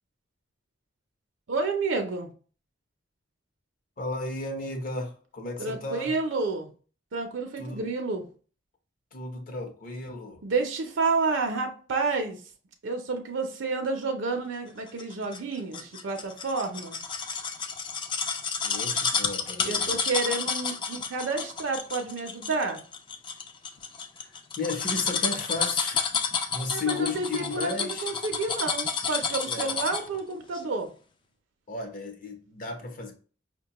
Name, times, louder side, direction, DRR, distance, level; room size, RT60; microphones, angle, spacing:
voice 1, 1.5-2.3 5.6-6.7 7.1-8.3 10.4-12.4 12.8-17.0 19.6-22.8 26.7-30.9, right 3 dB, 70° right, 0.5 m, -30 dB
voice 2, 4.0-6.1 7.6-7.8 9.1-10.4 18.6-20.0 24.2-26.1 26.5-28.1 29.4-29.8 31.7-33.1, left 3 dB, 45° left, 0.7 m, -34 dB
sound 1, 15.0-30.2 30.5-30.6, left 5 dB, 25° left, 0.3 m, -30 dB
5.1 x 2.2 x 2.8 m
head